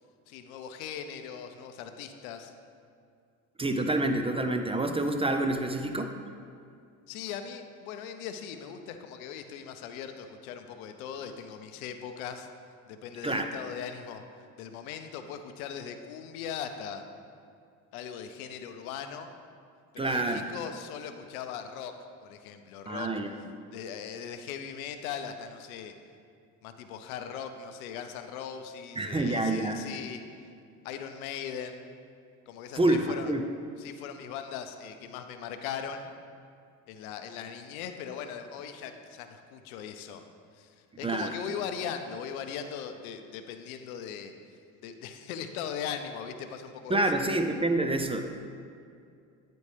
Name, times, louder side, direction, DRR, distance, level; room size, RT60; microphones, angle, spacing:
voice 1, 0.3-2.5 7.1-12.5 12.9-14.2 14.6-17.0 17.9-19.3 19.9-21.9 22.2-23.1 23.7-25.9 26.6-30.2 30.8-31.9 32.5-33.3 33.8-36.1 36.9-40.2 40.5-44.3 44.8-47.2, left 8 dB, 85° left, 8 dB, 0.6 m, -39 dB
voice 2, 3.6-6.2 13.2-13.5 20.0-20.5 22.9-23.3 29.0-29.8 32.8-33.4 41.0-41.3 46.9-48.2, right 2 dB, 15° right, 5 dB, 0.4 m, -27 dB
9.6 x 4.2 x 3.2 m, 2.4 s
hypercardioid pair, 65°, 42 cm